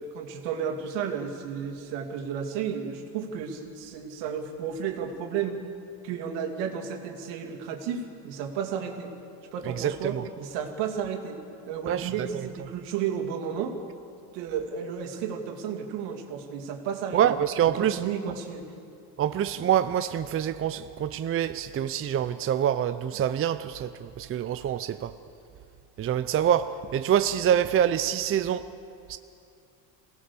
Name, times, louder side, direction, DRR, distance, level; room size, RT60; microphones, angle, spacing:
voice 1, 0.0-5.6 6.0-9.1 9.5-11.4 11.7-13.7 14.3-18.6, right 7 dB, 75° right, 2.5 m, -33 dB
voice 2, 11.9-12.4 17.1-18.0 19.2-25.1 26.0-28.6 29.1-29.2, right 10 dB, 30° right, 0.6 m, -26 dB
23.5 x 17.5 x 6.9 m
supercardioid pair, 105°, 43 cm